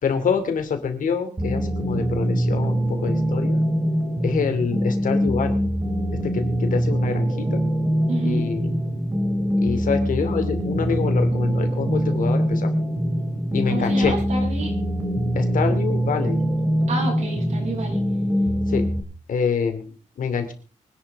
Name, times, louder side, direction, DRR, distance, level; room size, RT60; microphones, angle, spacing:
voice 1, 0.0-3.6 4.2-5.5 6.2-7.6 8.2-8.8 9.6-12.7 13.5-14.1 15.4-16.4 18.7-18.9 19.3-20.5, left 6 dB, 85° left, 7 dB, 2.7 m, -26 dB
sound 1, 1.4-19.0, equal, 20° right, 2.9 m, -23 dB
voice 2, 8.1-8.4 13.7-14.7 16.9-18.0, right 2 dB, 65° right, -1 dB, 7.7 m, -29 dB
25.0 x 11.0 x 3.6 m, 0.39 s
wide cardioid pair, 180°, 13 cm